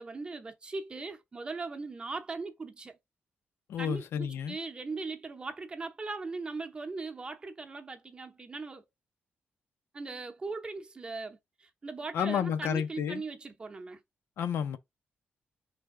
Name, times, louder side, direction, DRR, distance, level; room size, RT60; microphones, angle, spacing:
voice 1, 0.0-3.0 3.8-8.8 9.9-14.0, right 3 dB, 25° right, 0.7 m, -39 dB
voice 2, 3.7-4.6 12.1-13.2 14.4-14.8, left 8 dB, 85° left, 0.6 m, -31 dB
4.3 x 3.4 x 3.5 m
wide cardioid pair, 155°, 4 cm